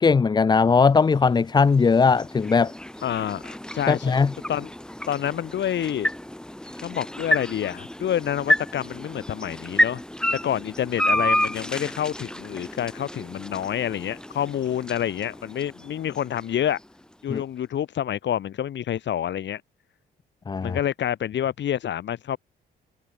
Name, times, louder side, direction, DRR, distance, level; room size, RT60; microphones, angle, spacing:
voice 1, 0.0-2.7 3.9-4.3 17.3-17.4 20.5-20.8, left 5 dB, 20° left, 0.5 m, -19 dB
sound 1, 0.9-17.1, left 1 dB, 5° left, 1.1 m, -30 dB
voice 2, 3.0-4.2 4.5-4.7 5.1-6.1 6.8-10.0 10.4-16.8 17.2-19.6 20.6-22.4, left 10 dB, 65° left, 3.5 m, -28 dB
cardioid pair, 90°, 20 cm